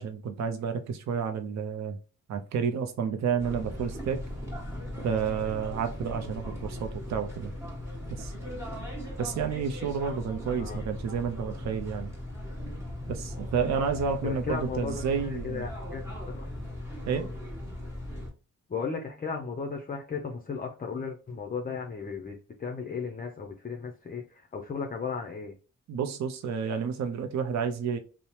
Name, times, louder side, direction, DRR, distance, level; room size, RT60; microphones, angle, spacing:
voice 1, 0.0-2.0 2.3-4.2 5.0-7.5 8.1-8.3 9.2-12.1 13.1-15.6 17.1-17.3 25.9-28.0, right 6 dB, 55° right, 0.5 m, -30 dB
sound 1, 3.4-18.3, left 1 dB, 10° right, 1.3 m, -38 dB
voice 2, 14.2-16.5 18.7-25.5, left 5 dB, 25° left, 0.5 m, -35 dB
2.7 x 2.0 x 3.0 m
cardioid pair, 70°, 33 cm